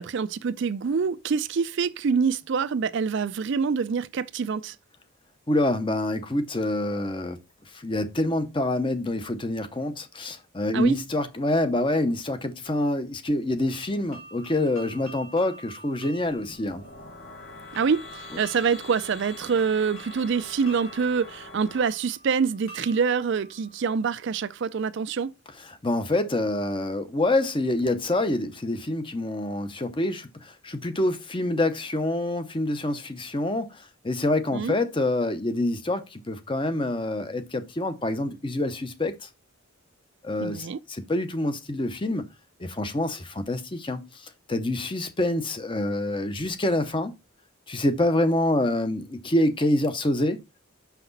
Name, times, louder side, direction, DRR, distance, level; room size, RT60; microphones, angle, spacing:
voice 1, 0.0-4.8 10.7-11.0 17.7-25.3 34.5-34.7 40.4-40.8, right 5 dB, 55° right, 0.4 m, -26 dB
voice 2, 5.5-7.4 7.7-16.8 25.7-39.3 40.2-42.3 42.6-47.1 47.7-50.4, left 1 dB, 20° left, 0.7 m, -26 dB
sound 1, 13.7-24.5, right 2 dB, 70° left, 3.1 m, -48 dB
sound 2, 16.2-21.9, left 3 dB, 45° left, 1.1 m, -44 dB
5.9 x 5.8 x 3.9 m
head